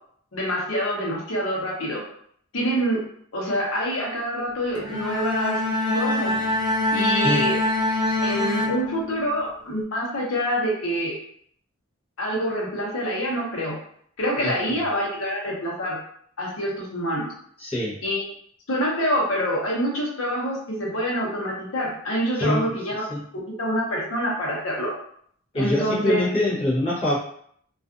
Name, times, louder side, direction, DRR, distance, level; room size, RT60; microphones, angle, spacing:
voice 1, 0.3-2.0 2.5-3.0 3.3-5.6 5.9-6.3 6.9-7.6 8.2-11.1 12.2-13.8 14.2-16.0 16.4-17.3 18.0-18.3 18.7-23.0 23.3-24.9 25.5-26.2, equal, 75° left, -3 dB, 0.8 m, -26 dB
Bowed string instrument, 4.8-9.4, left 1 dB, 20° right, 0.4 m, -24 dB
voice 2, 17.6-18.0 22.4-22.7 23.1-23.2 25.5-27.2, left 1 dB, 30° left, -8 dB, 0.8 m, -24 dB
2.4 x 2.4 x 2.4 m, 0.64 s
head